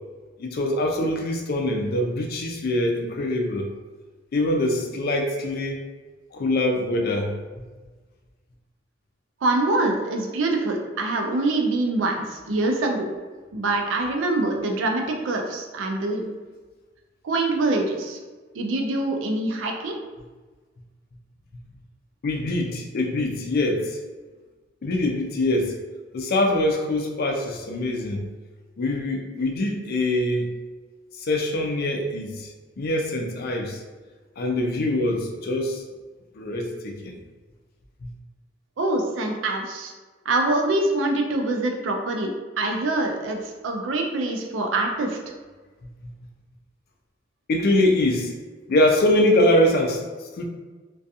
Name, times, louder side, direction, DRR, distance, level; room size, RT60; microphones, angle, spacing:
voice 1, 0.4-3.7 4.3-5.8 6.3-7.4 22.2-24.0 24.8-25.7 26.1-28.3 28.8-30.5 31.2-32.5 32.8-33.8 34.4-35.8 36.4-37.2 47.5-48.3 48.7-50.0 50.3-50.4, left 1 dB, 55° left, 2 dB, 0.4 m, -23 dB
voice 2, 9.4-13.1 13.5-16.3 17.2-18.2 18.5-20.0 38.8-39.9 40.3-43.4 43.6-45.2, right 2 dB, 85° right, 3 dB, 0.4 m, -24 dB
2.4 x 2.2 x 2.6 m, 1.3 s
head